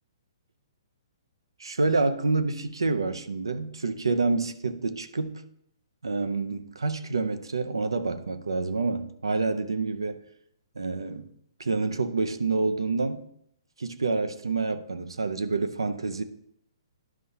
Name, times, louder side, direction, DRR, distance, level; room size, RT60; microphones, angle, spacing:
voice 1, 1.6-5.4 6.0-10.2 10.8-11.3 11.6-13.2 13.8-16.2, right 3 dB, 80° right, 0.6 m, -28 dB
11.0 x 5.5 x 2.8 m
figure-of-eight pair, 125°, 2 cm